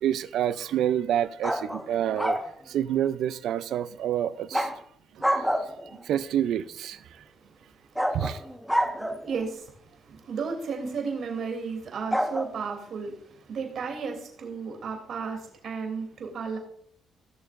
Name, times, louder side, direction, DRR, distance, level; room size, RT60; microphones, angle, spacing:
voice 1, 0.0-2.4 2.7-4.7 6.1-7.0 8.1-8.4, right 10 dB, 80° right, 0.5 m, -27 dB
sound 1, 1.4-2.5 4.5-4.8 5.2-5.9 8.0-9.4 12.1-12.5, equal, ahead, 1.3 m, -27 dB
voice 2, 7.2-7.5 7.8-8.2 8.9-16.6, right 5 dB, 60° right, 3.1 m, -34 dB
16.5 x 6.8 x 2.5 m
cardioid pair, 90°, 0 cm